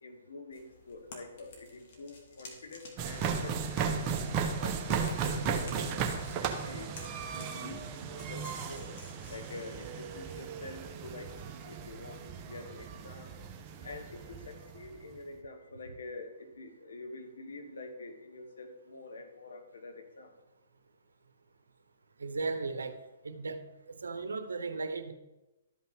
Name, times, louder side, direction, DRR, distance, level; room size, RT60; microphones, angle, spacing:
voice 1, 0.0-3.6 3.9-4.1 4.6-6.9 7.3-8.9 9.3-13.3 13.8-20.3, left 2 dB, 80° left, 6 dB, 1.4 m, -47 dB
sound 1, 0.5-11.5, left 3 dB, 55° left, 2.1 m, -54 dB
sound 2, 3.0-15.0, right 6 dB, 30° right, 1.0 m, -36 dB
voice 2, 22.2-23.0 23.2-23.6 23.9-25.1, right 3 dB, 90° right, 10 dB, 0.8 m, -36 dB
12.5 x 5.5 x 3.7 m, 1.0 s
hypercardioid pair, 135°, 0 cm